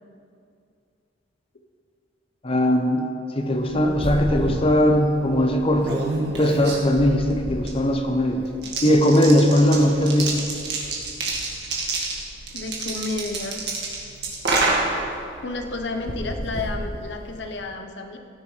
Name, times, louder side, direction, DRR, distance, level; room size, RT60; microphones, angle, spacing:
voice 1, 2.4-3.1 3.3-6.0 6.4-8.5 8.8-10.5, equal, 30° left, 4 dB, 0.7 m, -19 dB
sound 1, 3.5-17.6, right 2 dB, 60° right, 1.9 m, -29 dB
voice 2, 12.5-13.6 15.4-18.2, left 3 dB, 70° left, 4 dB, 1.0 m, -31 dB
17.0 x 10.0 x 3.3 m, 2.5 s
head